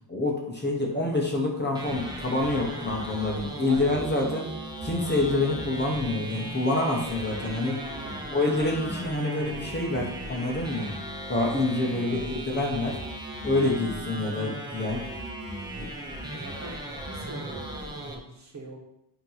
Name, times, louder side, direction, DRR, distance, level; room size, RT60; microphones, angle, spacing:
voice 1, 0.1-4.5 4.8-7.8 8.3-10.9 11.3-13.0 13.4-15.0 15.8-15.9, left 2 dB, 25° left, -1 dB, 1.2 m, -27 dB
sound 1, 1.7-18.1, right 1 dB, 10° right, 1.0 m, -37 dB
voice 2, 3.6-4.3 7.7-8.2 12.0-12.2 16.3-16.8 17.1-18.8, right 3 dB, 40° right, -1 dB, 1.4 m, -43 dB
8.5 x 3.1 x 5.7 m, 0.82 s
wide cardioid pair, 160°, 44 cm